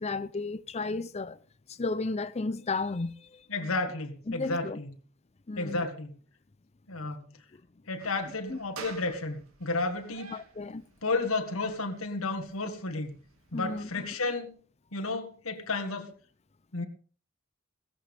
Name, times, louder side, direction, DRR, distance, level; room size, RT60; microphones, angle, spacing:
voice 1, 0.0-1.4 1.7-3.5 4.3-4.8 5.5-5.9 8.5-8.6 10.3-10.9 13.5-14.1, left 3 dB, 30° left, 0.6 m, -33 dB
voice 2, 3.5-4.9 5.5-6.2 6.9-7.3 7.9-10.3 11.0-13.2 13.5-14.6 14.9-16.1 16.7-16.8, left 3 dB, 85° left, 1.8 m, -32 dB
sound 1, 8.0-14.0, right 5 dB, 90° right, 2.1 m, -50 dB
16.5 x 14.5 x 3.5 m
head